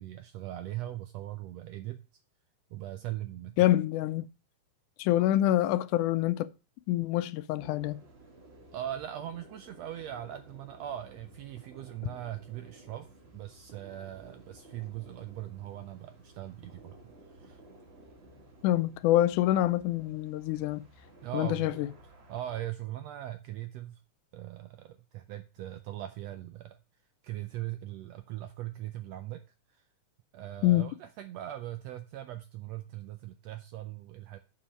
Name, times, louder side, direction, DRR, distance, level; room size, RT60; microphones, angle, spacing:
voice 1, 0.0-2.0 2.7-3.7 8.7-17.6 21.2-21.8 22.3-24.0 24.3-26.8 27.2-29.4 29.7-29.8 30.3-34.4, right 13 dB, 80° right, 1.5 m, -40 dB
voice 2, 3.6-4.3 5.0-6.5 6.9-8.0 18.6-20.9 21.3-21.9 30.6-30.9, left 14 dB, 85° left, 2.0 m, -26 dB
sound 1, 7.6-22.6, right 1 dB, 35° right, 1.0 m, -55 dB
7.2 x 5.6 x 6.3 m
omnidirectional pair, 3.5 m